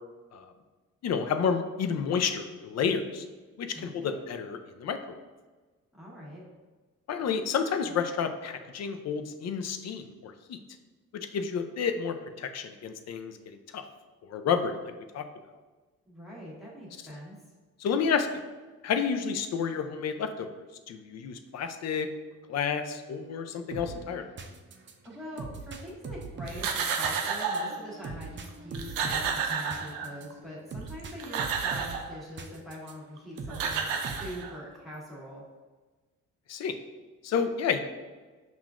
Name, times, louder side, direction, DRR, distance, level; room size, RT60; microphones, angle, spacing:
voice 1, 1.0-3.2 3.6-5.2 7.1-10.6 11.3-13.8 14.3-14.7 15.1-15.2 17.8-18.4 18.8-20.5 20.9-22.1 22.5-24.3 36.5-36.7 37.2-37.8, left 6 dB, 50° left, 8 dB, 0.5 m, -30 dB
voice 2, 3.7-4.2 5.9-6.4 16.0-17.3 25.0-35.4, equal, ahead, -7 dB, 1.4 m, -43 dB
sound 1, 23.7-32.9 33.4-34.5, right 4 dB, 35° right, 0.5 m, -42 dB
sound 2, 26.5-27.8 28.4-28.5 28.7-30.3 31.0-32.1 33.2-33.3 33.5-34.8, right 6 dB, 90° right, 0.5 m, -31 dB
5.6 x 2.4 x 2.4 m, 1.3 s
supercardioid pair, 60°, 33 cm